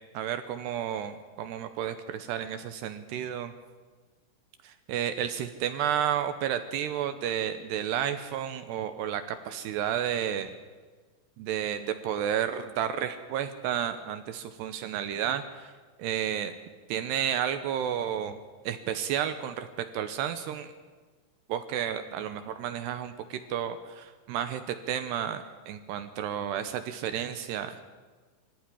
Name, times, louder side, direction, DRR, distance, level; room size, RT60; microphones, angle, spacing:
voice 1, 0.1-3.5 4.6-10.5 11.4-15.7 16.0-16.5 16.9-18.4 18.6-20.7 21.5-27.8, right 9 dB, 80° right, 9 dB, 2.5 m, -31 dB
24.0 x 15.5 x 10.0 m, 1.4 s
omnidirectional pair, 6.0 m